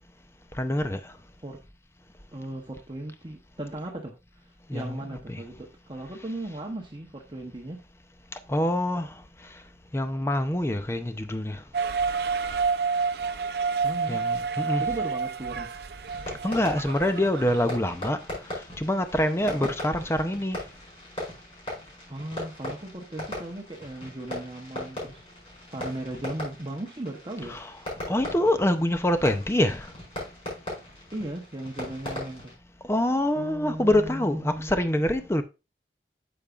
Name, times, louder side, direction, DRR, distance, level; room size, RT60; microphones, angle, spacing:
voice 1, 0.6-1.1 4.7-5.4 8.3-9.2 9.9-11.6 14.1-15.0 16.4-18.2 18.5-20.6 27.5-27.8 28.1-29.9 32.9-35.4, left 1 dB, 15° left, 0.6 m, -26 dB
voice 2, 2.3-7.8 13.8-14.2 14.8-15.8 19.4-19.7 22.1-25.3 25.7-27.6 31.1-32.5 33.3-34.7, right 1 dB, 25° right, 0.9 m, -37 dB
sound 1, 11.7-17.8, right 5 dB, 65° right, 0.6 m, -29 dB
Fireworks, 16.0-32.5, left 1 dB, 35° left, 5.0 m, -39 dB
8.7 x 7.0 x 2.4 m
head